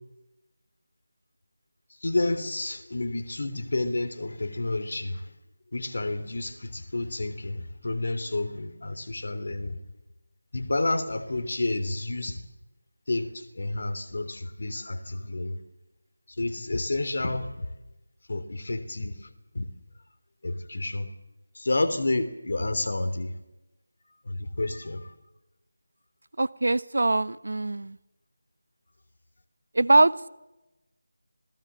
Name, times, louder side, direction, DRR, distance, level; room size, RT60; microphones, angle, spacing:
voice 1, 2.0-5.3 5.7-9.8 10.5-12.4 13.1-15.6 16.4-17.7 18.3-19.3 19.5-19.7 20.4-21.1 21.5-23.3 24.2-25.1, left 2 dB, 60° left, 9 dB, 3.1 m, -30 dB
voice 2, 26.4-28.0 29.7-30.3, right 2 dB, 70° right, 17 dB, 1.0 m, -22 dB
26.5 x 18.5 x 7.5 m, 1.0 s
figure-of-eight pair, 165°, 0 cm